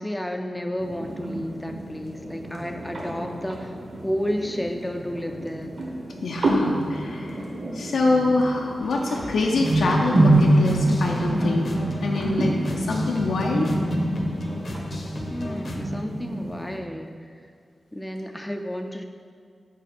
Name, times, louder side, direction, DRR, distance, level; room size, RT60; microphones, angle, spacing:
voice 1, 0.0-3.8 4.0-5.8 15.3-17.3 17.9-19.0, equal, 5° left, 4 dB, 0.4 m, -31 dB
sound 1, 0.8-16.8, right 1 dB, 50° right, 1.1 m, -26 dB
voice 2, 6.2-7.4 7.7-11.7 12.0-13.7, left 3 dB, 85° left, -1 dB, 0.6 m, -25 dB
sound 2, 8.8-15.8, left 2 dB, 45° left, 0.7 m, -37 dB
8.1 x 4.7 x 4.3 m, 2.1 s
wide cardioid pair, 160°, 0 cm